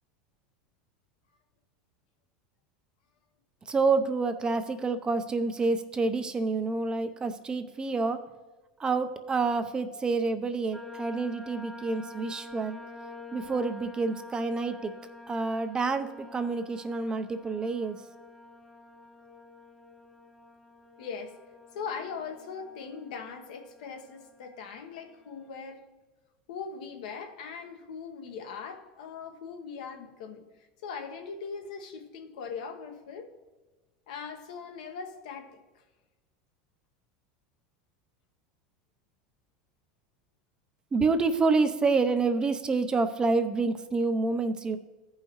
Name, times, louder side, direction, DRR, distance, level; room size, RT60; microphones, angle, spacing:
voice 1, 3.7-8.2 8.8-12.8 13.3-14.9 15.3-18.0 40.9-44.8, right 3 dB, 20° right, 8 dB, 0.6 m, -28 dB
sound 1, 10.7-25.4, left 2 dB, 10° left, 0.9 m, -48 dB
voice 2, 21.0-21.4 21.7-25.8 26.5-33.3 34.1-35.6, left 5 dB, 80° left, 4 dB, 1.2 m, -40 dB
14.5 x 5.6 x 3.1 m, 1.2 s
supercardioid pair, 115°, 4 cm